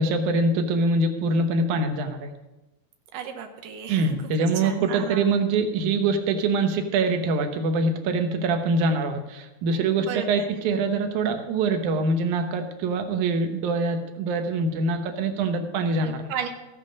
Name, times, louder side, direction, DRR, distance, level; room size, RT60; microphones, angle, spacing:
voice 1, 0.0-2.3 3.9-16.3, right 3 dB, 70° right, 6 dB, 1.9 m, -24 dB
voice 2, 3.1-5.3 10.0-10.5 16.0-16.5, right 7 dB, 90° right, 6 dB, 1.9 m, -34 dB
15.0 x 8.8 x 5.2 m, 1.0 s
omnidirectional pair, 4.8 m